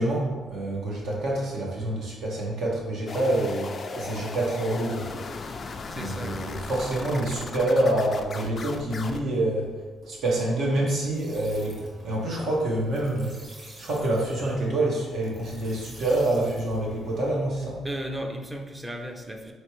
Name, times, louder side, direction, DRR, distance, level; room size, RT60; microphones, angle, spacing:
voice 1, 0.0-5.1 5.9-9.7 10.0-13.3 13.8-17.9, right 1 dB, 70° right, -2 dB, 1.1 m, -27 dB
sound 1, 3.1-9.2, left 4 dB, 45° left, 0.3 m, -37 dB
voice 2, 5.9-6.5 17.8-19.5, equal, 15° right, 3 dB, 0.6 m, -35 dB
sound 2, 11.1-17.5, right 1 dB, 40° right, 1.3 m, -47 dB
4.3 x 3.1 x 3.0 m, 1.4 s
cardioid pair, 90°, 0 cm